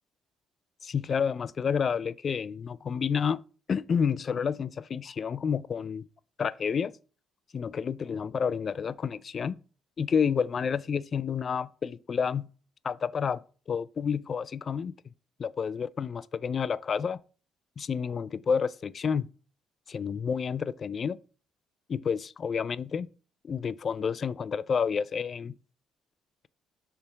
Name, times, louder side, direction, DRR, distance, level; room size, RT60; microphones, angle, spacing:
voice 1, 0.8-3.4 3.7-6.1 6.4-6.9 7.5-9.6 10.0-12.5 12.8-13.4 13.7-15.0 15.4-17.2 17.8-19.3 19.9-21.2 21.9-23.1 23.4-25.6, left 6 dB, 35° left, 0.3 m, -29 dB
6.8 x 3.4 x 5.7 m
cardioid pair, 140°, 0 cm